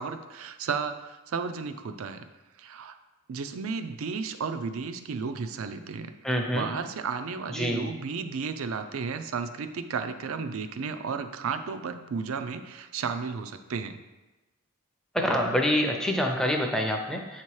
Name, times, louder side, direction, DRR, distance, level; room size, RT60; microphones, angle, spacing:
voice 1, 0.0-2.2 2.6-2.9 3.3-6.1 6.5-14.0, right 5 dB, 75° right, 8 dB, 0.4 m, -33 dB
voice 2, 6.2-6.7 7.5-7.9 15.1-17.4, equal, 5° left, 1 dB, 0.5 m, -26 dB
7.6 x 2.9 x 4.6 m, 1.1 s
head